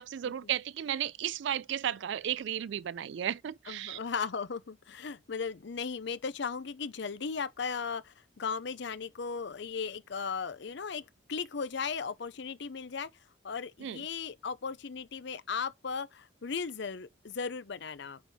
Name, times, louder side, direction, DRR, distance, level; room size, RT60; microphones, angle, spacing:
voice 1, 0.0-4.0 13.8-14.1, right 10 dB, 65° right, 0.3 m, -34 dB
voice 2, 3.7-13.1 13.4-18.2, left 5 dB, 60° left, 0.6 m, -36 dB
8.4 x 4.2 x 4.4 m
head